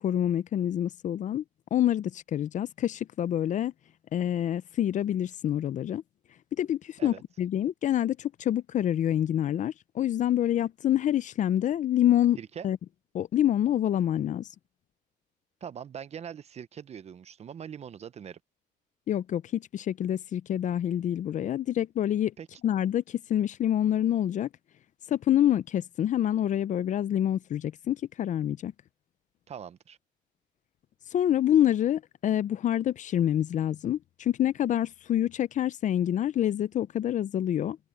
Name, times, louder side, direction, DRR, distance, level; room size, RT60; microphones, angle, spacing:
voice 1, 0.0-1.4 1.7-3.7 4.1-6.0 6.6-12.4 12.6-12.8 13.1-14.5 19.1-22.3 22.6-24.5 25.1-28.7 31.1-37.8, left 11 dB, 45° left, 0.5 m, -27 dB
voice 2, 12.4-12.7 15.6-18.4 22.4-22.5 29.5-30.0, right 8 dB, 40° right, 0.8 m, -42 dB
cardioid pair, 110°, 17 cm